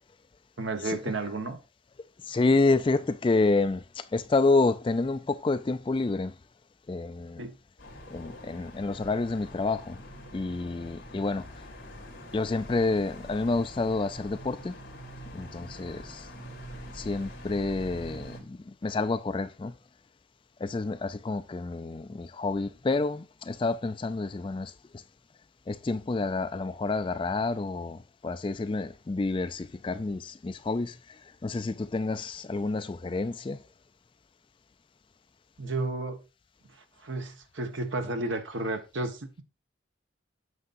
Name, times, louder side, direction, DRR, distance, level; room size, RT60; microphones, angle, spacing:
voice 1, 0.6-1.6 7.4-7.6 35.6-36.2 37.0-39.4, right 2 dB, 75° right, 1.1 m, -32 dB
voice 2, 2.2-6.3 6.9-7.4 8.1-10.0 10.3-11.6 12.3-14.7 15.3-16.3 16.9-19.7 20.6-24.7 25.7-33.6, left 3 dB, 25° left, 0.3 m, -29 dB
sound 1, 7.8-18.4, equal, 55° left, 2.7 m, -45 dB
9.6 x 6.7 x 2.6 m
head